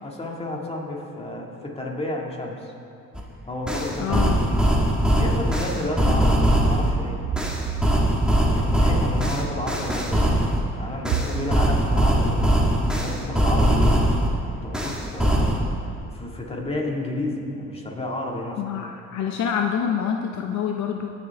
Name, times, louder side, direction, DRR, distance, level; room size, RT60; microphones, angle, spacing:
voice 1, 0.0-2.7 3.5-4.7 5.1-7.2 8.5-10.4 10.8-12.6 13.0-14.0 14.5-15.5 16.1-18.6, left 1 dB, 20° left, -1 dB, 2.1 m, -31 dB
sound 1, 3.2-3.3 3.7-6.9 7.4-10.6 11.0-14.3 14.7-15.6, equal, 5° right, 1.6 m, -21 dB
voice 2, 4.0-4.4 6.1-6.2 18.6-21.1, left 8 dB, 65° left, 2 dB, 0.7 m, -26 dB
sound 2, 6.5-12.7, right 7 dB, 90° right, 0.7 m, -33 dB
18.5 x 6.9 x 3.5 m, 2.6 s
cardioid pair, 90°, 30 cm